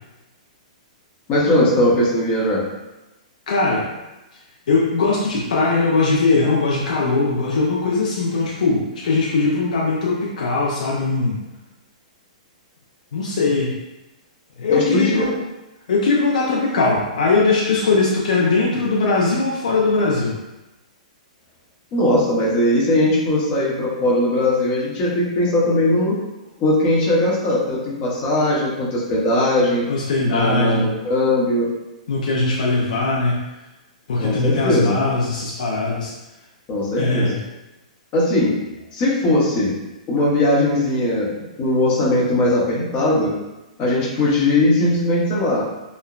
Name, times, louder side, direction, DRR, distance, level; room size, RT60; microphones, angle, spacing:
voice 1, 1.3-2.6 14.7-15.2 21.9-26.2 26.6-29.9 30.2-31.7 34.2-35.0 36.7-37.3 38.1-38.5 38.9-39.7 40.1-41.3 41.6-43.3 43.8-45.6, left 1 dB, 30° left, -5 dB, 0.8 m, -19 dB
voice 2, 3.5-3.9 4.7-11.4 13.1-13.8 14.6-15.4 15.9-20.4 29.9-30.9 32.1-33.4 34.1-36.1 37.0-37.4, left 3 dB, 75° left, -4 dB, 0.4 m, -20 dB
2.9 x 2.0 x 2.4 m, 1.0 s
hypercardioid pair, 140°, 4 cm